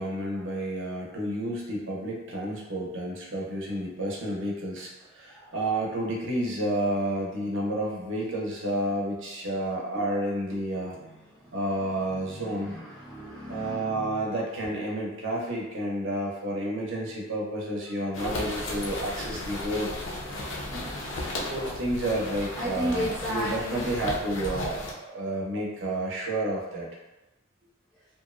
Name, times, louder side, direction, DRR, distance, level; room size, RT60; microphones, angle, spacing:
voice 1, 0.0-11.0 11.5-12.7 13.5-19.9 21.2-26.9, right 1 dB, 70° right, -3 dB, 0.6 m, -30 dB
voice 2, 10.9-11.6 12.1-14.3 20.7-21.4 22.6-23.9, equal, ahead, -8 dB, 0.4 m, -35 dB
sound 1, 18.1-24.9, left 1 dB, 75° left, 0.5 m, -35 dB
2.7 x 2.0 x 2.4 m, 1.0 s
head